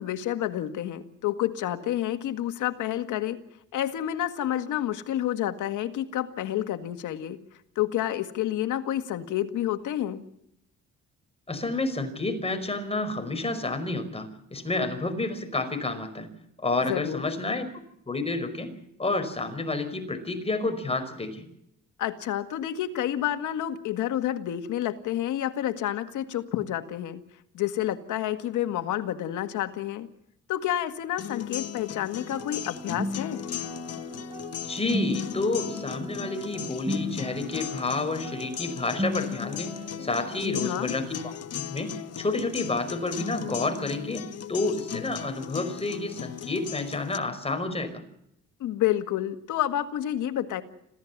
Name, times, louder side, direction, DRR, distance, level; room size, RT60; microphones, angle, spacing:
voice 1, 0.0-3.4 3.7-7.4 7.8-10.2 16.9-17.2 22.0-27.2 27.5-30.1 30.5-33.4 40.4-40.9 48.6-50.6, left 12 dB, 85° left, 9 dB, 1.9 m, -29 dB
voice 2, 11.5-16.3 16.6-17.7 18.1-18.7 19.0-21.4 34.7-48.0, left 2 dB, 20° left, 7 dB, 5.2 m, -30 dB
sound 1, 31.2-47.2, left 10 dB, 55° left, 1.2 m, -38 dB
sound 2, 32.2-40.4, left 1 dB, 15° right, 3.4 m, -36 dB
26.5 x 16.0 x 7.4 m, 0.76 s
cardioid pair, 90°, 30 cm